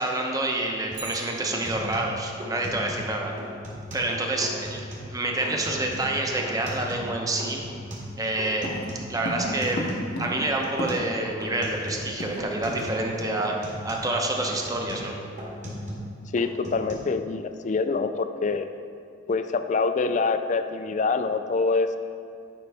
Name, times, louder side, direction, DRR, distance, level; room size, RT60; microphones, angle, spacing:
voice 1, 0.0-3.3 3.9-7.6 8.2-8.7 9.1-9.8 10.2-15.1, right 2 dB, 20° right, 0 dB, 0.8 m, -28 dB
sound 1, 0.9-1.1 1.4-3.1 3.4-4.1 4.4-5.1 5.4-7.1 7.4-10.1 10.4-11.1 11.4-12.1 12.4-13.1 13.4-16.1 16.4-16.9, equal, 40° right, 2.0 m, -37 dB
Bicycle, 0.9-2.3 10.6-10.7, right 3 dB, 65° right, 1.0 m, -43 dB
sound 2, 8.6-11.3 11.6-11.7 11.9-12.9 13.2-13.4 13.8-14.0, left 1 dB, 60° left, 0.9 m, -34 dB
voice 2, 16.3-18.7 19.3-22.0, left 4 dB, 40° left, 9 dB, 0.4 m, -25 dB
10.5 x 5.5 x 3.4 m, 2.2 s
head